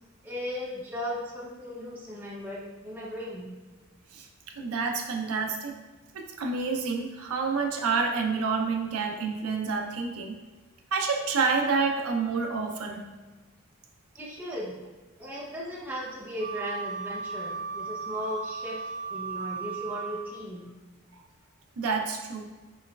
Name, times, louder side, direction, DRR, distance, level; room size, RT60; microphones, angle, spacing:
voice 1, 0.2-3.5 14.2-14.8 15.2-20.7, equal, 10° right, -5 dB, 0.6 m, -37 dB
voice 2, 4.6-5.8 6.1-10.4 10.9-13.1 21.1-21.2 21.8-22.4, right 4 dB, 85° right, 2 dB, 0.5 m, -28 dB
Wind instrument woodwind instrument, 16.4-20.4, right 5 dB, 35° right, 1.1 m, -36 dB
4.6 x 3.0 x 2.2 m, 1.3 s
head